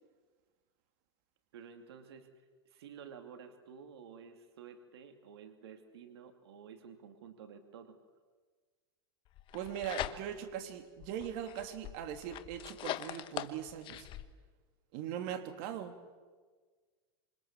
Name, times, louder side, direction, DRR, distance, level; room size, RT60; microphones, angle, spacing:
voice 1, 1.5-8.0, right 7 dB, 85° right, 6 dB, 2.6 m, -52 dB
sound 1, 9.4-10.6 11.0-14.2, left 13 dB, 40° left, 1.4 m, -42 dB
voice 2, 9.5-14.1 14.9-16.0, right 9 dB, 55° right, 6 dB, 3.0 m, -40 dB
28.0 x 27.0 x 7.4 m, 1.5 s
supercardioid pair, 120°, 13 cm